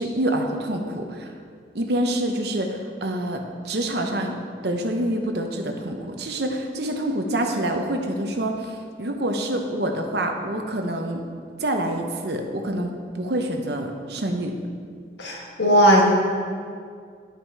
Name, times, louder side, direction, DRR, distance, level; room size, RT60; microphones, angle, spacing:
voice 1, 0.0-1.3 1.7-4.4 4.6-11.2 11.6-14.6, right 1 dB, 65° right, 3 dB, 0.9 m, -26 dB
voice 2, 15.2-16.0, equal, 80° left, -2 dB, 1.8 m, -17 dB
10.0 x 5.8 x 4.8 m, 2.1 s
head